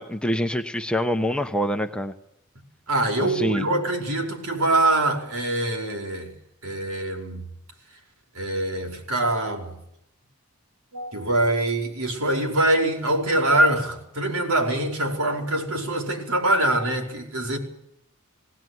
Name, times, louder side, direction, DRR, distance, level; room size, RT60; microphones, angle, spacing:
voice 1, 0.0-2.1 3.2-3.7, equal, 5° left, 6 dB, 1.0 m, -25 dB
voice 2, 2.9-6.3 6.6-7.4 8.3-9.7 10.9-17.6, right 1 dB, 80° right, 3 dB, 5.2 m, -24 dB
20.0 x 18.5 x 9.5 m, 0.77 s
head